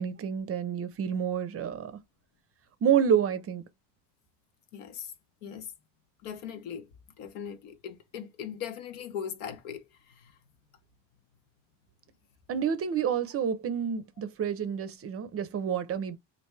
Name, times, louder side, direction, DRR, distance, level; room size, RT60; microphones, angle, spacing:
voice 1, 0.0-1.9 2.8-3.6 12.5-16.2, right 8 dB, 35° right, 0.5 m, -28 dB
voice 2, 4.7-5.1 5.4-5.7 6.2-6.9 7.2-9.8, left 8 dB, 85° left, 1.0 m, -39 dB
3.2 x 2.6 x 3.1 m
cardioid pair, 110°, 44 cm